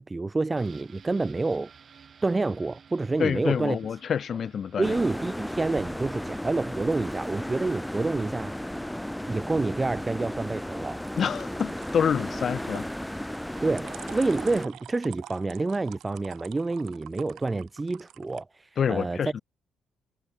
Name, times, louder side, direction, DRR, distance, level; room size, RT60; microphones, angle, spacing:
voice 1, 0.0-1.7 2.2-3.8 4.8-8.5 9.3-11.0 13.6-19.4, right 3 dB, 20° right, 1.0 m, -28 dB
sound 1, 0.6-10.2 10.5-10.6, right 7 dB, 50° right, 4.2 m, -56 dB
sound 2, 0.8-1.5 11.1-18.4, right 12 dB, 85° right, 1.1 m, -48 dB
voice 2, 3.2-5.0 11.2-12.9 18.8-19.4, left 7 dB, 55° left, 0.8 m, -27 dB
sound 3, 4.8-14.7, left 1 dB, 5° left, 0.5 m, -34 dB
cardioid pair, 95°, 0 cm